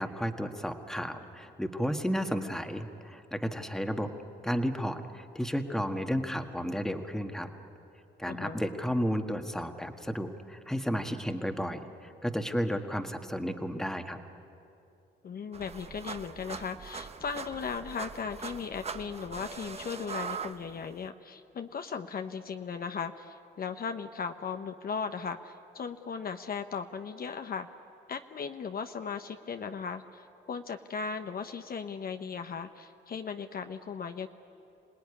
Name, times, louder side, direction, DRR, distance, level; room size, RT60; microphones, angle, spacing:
voice 1, 0.0-4.1 4.4-7.5 8.2-14.2, equal, ahead, 5 dB, 1.6 m, -32 dB
voice 2, 8.3-8.6 15.2-27.7 28.1-34.3, left 6 dB, 50° left, 7 dB, 0.9 m, -37 dB
sound 1, 15.5-21.1, right 5 dB, 30° right, 1.0 m, -41 dB
26.5 x 18.5 x 9.8 m, 2.7 s
cardioid pair, 90°, 20 cm